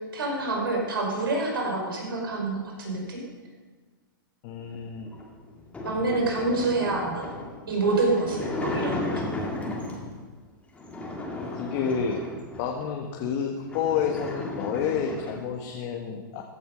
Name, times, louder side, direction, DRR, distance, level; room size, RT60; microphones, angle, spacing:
voice 1, 0.1-3.2 5.8-7.3 7.7-9.3, right 2 dB, 85° right, 0 dB, 5.2 m, -27 dB
voice 2, 4.4-5.1 11.5-12.2 12.6-16.4, left 7 dB, 45° left, 1 dB, 1.6 m, -29 dB
sound 1, 5.0-10.2 10.8-12.8 13.3-13.4 13.6-15.5, left 2 dB, 10° left, 2.2 m, -35 dB
15.5 x 11.0 x 5.3 m, 1.4 s
hypercardioid pair, 135°, 12 cm